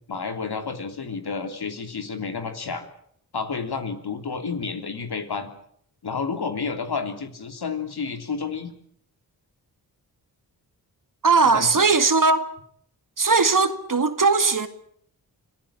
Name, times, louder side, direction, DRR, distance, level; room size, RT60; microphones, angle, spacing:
voice 1, 0.1-2.9 3.3-5.5 6.0-8.7 11.5-11.8, left 5 dB, 60° left, 3.2 m, -30 dB
voice 2, 11.2-12.5 13.2-14.7, right 4 dB, 45° right, 2.3 m, -19 dB
26.0 x 15.0 x 8.9 m
cardioid pair, 45°, 43 cm